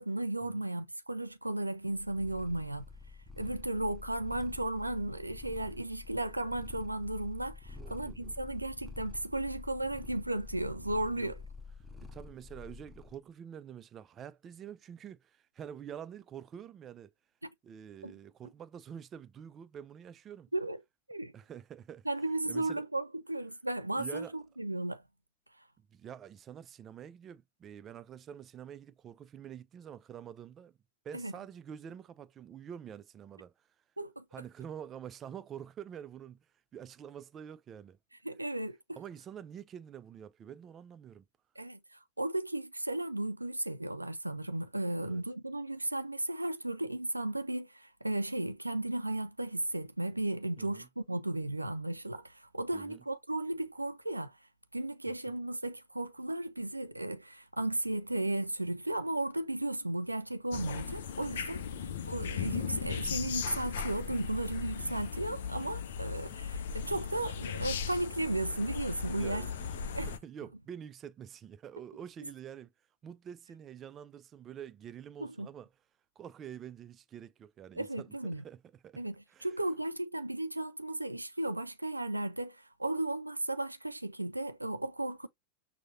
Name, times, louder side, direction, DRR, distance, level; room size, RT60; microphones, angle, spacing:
voice 1, 0.0-2.8 3.4-11.4 17.4-17.5 18.0-18.1 20.5-20.8 21.1-21.3 22.1-25.0 31.1-31.3 34.0-34.2 38.2-39.0 41.6-54.4 54.7-61.6 62.1-69.5 69.9-70.1 75.2-75.5 77.8-78.4 79.0-79.2 79.4-85.3, right 1 dB, 85° right, 0.4 m, -35 dB
Purr, 2.0-13.2, left 4 dB, ahead, 0.9 m, -48 dB
voice 2, 7.7-8.3 11.1-11.3 12.0-17.1 17.6-20.5 21.3-22.1 22.5-22.8 23.9-24.4 25.8-30.8 31.0-33.5 34.3-36.5 36.7-38.0 38.9-41.3 45.0-45.2 50.6-50.9 52.7-53.0 55.1-55.3 61.8-62.0 69.2-72.7 73.0-75.7 76.2-79.0 79.3-79.5, right 9 dB, 25° right, 0.4 m, -47 dB
sound 1, 60.5-70.2, left 7 dB, 60° left, 0.5 m, -37 dB
6.2 x 2.2 x 2.6 m
figure-of-eight pair, 90°, 0 cm